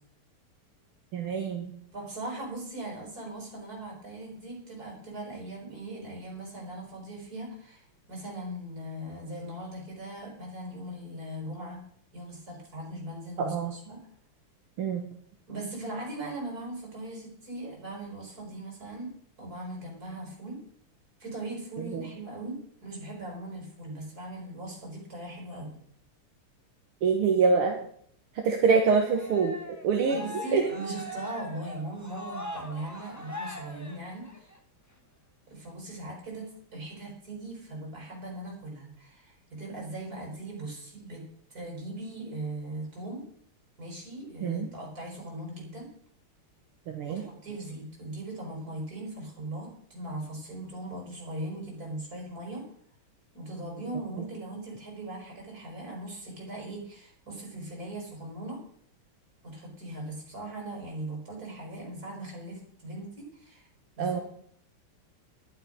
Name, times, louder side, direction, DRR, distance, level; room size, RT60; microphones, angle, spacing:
voice 1, 1.1-1.7 13.4-13.7 14.8-15.1 21.8-22.1 27.0-27.8 28.4-30.6 44.4-44.7 46.9-47.2 64.0-64.2, right 5 dB, 75° right, 2 dB, 2.2 m, -26 dB
voice 2, 1.9-11.8 12.1-14.0 15.5-19.1 19.4-20.6 21.2-25.8 30.1-34.5 35.5-41.2 41.5-43.2 43.8-45.9 47.1-52.6 53.3-58.6 59.4-63.7 64.0-64.2, right 1 dB, 40° right, -1 dB, 5.8 m, -39 dB
Cheering, 29.1-34.6, left 1 dB, 10° left, 0.9 m, -40 dB
12.0 x 11.5 x 5.3 m, 0.63 s
omnidirectional pair, 2.4 m